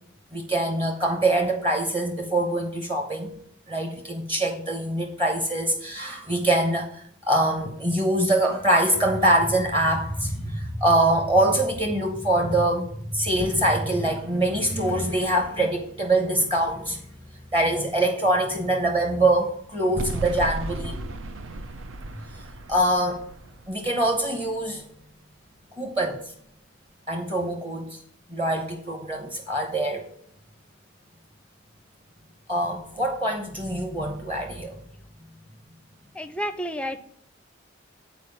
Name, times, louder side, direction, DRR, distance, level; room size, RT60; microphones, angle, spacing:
voice 1, 0.3-3.3 3.7-17.0 17.5-21.1 22.3-22.4 22.7-23.2 23.7-24.8 25.8-26.3 27.1-28.0 28.3-30.0 32.5-34.8, right 1 dB, 25° right, 3 dB, 1.0 m, -24 dB
sound 1, 20.0-25.1, right 2 dB, 80° right, 0.6 m, -36 dB
voice 2, 36.1-37.0, equal, 5° left, 8 dB, 0.5 m, -30 dB
9.3 x 4.4 x 6.7 m, 0.64 s
head